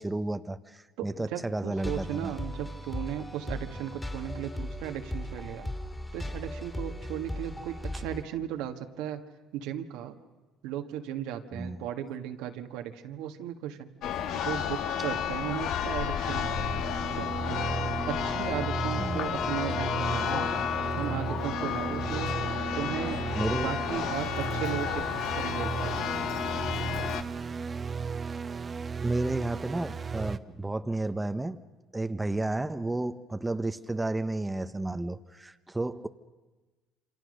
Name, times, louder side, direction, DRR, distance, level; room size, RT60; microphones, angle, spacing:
voice 1, 0.0-2.3 11.5-11.8 16.7-17.0 19.0-19.4 23.4-23.8 29.0-31.6 31.9-36.1, right 2 dB, 10° right, 9 dB, 1.0 m, -32 dB
voice 2, 1.0-5.7 6.1-9.2 9.5-10.2 10.6-13.9 14.3-16.5 17.2-17.7 18.1-20.5 21.0-22.3 22.7-23.2 23.5-26.0, right 10 dB, 80° right, 6 dB, 1.7 m, -36 dB
sound 1, 1.8-8.2, left 1 dB, 10° left, 2.7 m, -37 dB
Church bell, 14.0-27.2, left 8 dB, 65° left, 1.3 m, -32 dB
sound 2, 16.2-30.4, right 5 dB, 35° right, 1.0 m, -35 dB
28.0 x 26.0 x 6.6 m, 1.2 s
supercardioid pair, 90°, 0 cm